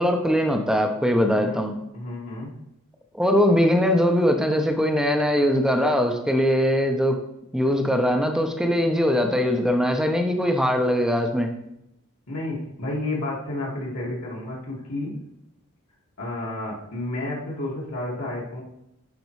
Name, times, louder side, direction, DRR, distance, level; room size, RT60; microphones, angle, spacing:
voice 1, 0.0-1.7 3.1-7.2 7.5-11.5, equal, 5° right, 4 dB, 0.7 m, -21 dB
voice 2, 1.1-1.6 1.9-2.5 12.3-15.2 16.2-18.6, left 2 dB, 70° left, -5 dB, 2.1 m, -31 dB
10.5 x 4.6 x 3.2 m, 0.82 s
head